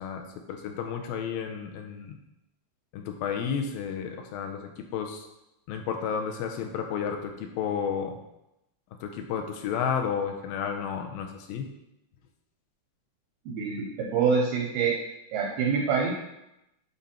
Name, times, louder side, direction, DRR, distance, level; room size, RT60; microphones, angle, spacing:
voice 1, 0.0-2.2 2.9-5.3 5.7-8.2 9.0-11.7, left 7 dB, 80° left, 4 dB, 2.1 m, -32 dB
voice 2, 13.5-15.0 15.3-16.1, right 5 dB, 75° right, -2 dB, 2.7 m, -26 dB
9.0 x 4.0 x 4.3 m, 0.88 s
omnidirectional pair, 4.7 m